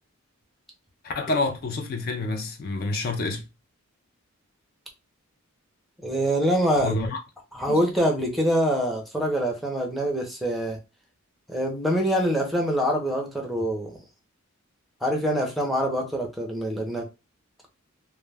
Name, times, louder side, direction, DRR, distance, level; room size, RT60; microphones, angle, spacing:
voice 1, 1.0-3.4 6.8-7.2 7.7-7.8, left 2 dB, 45° left, 0.4 m, -28 dB
voice 2, 6.0-6.9 7.5-10.8 11.5-13.9 15.0-17.1, equal, ahead, 0.6 m, -25 dB
2.2 x 2.0 x 3.3 m
head